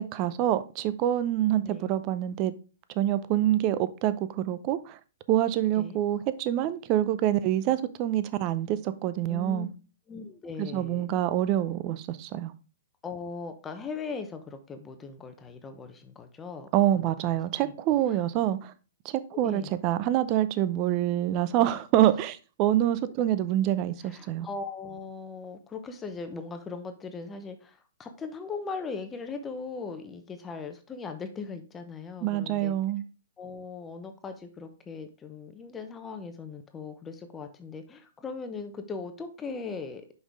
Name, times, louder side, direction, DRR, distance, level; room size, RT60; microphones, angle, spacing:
voice 1, 0.0-2.5 3.0-5.0 5.3-9.7 10.6-12.5 16.7-18.7 19.0-24.5 32.2-33.0, right 12 dB, 35° right, 0.6 m, -26 dB
voice 2, 1.5-2.0 5.8-6.0 9.3-9.7 10.1-11.1 13.0-16.7 16.9-17.1 17.6-17.7 18.1-18.3 19.3-19.7 21.7-21.8 24.0-32.7 33.4-40.0, left 4 dB, 15° left, 0.8 m, -39 dB
6.2 x 5.4 x 3.5 m
hypercardioid pair, 125°, 0 cm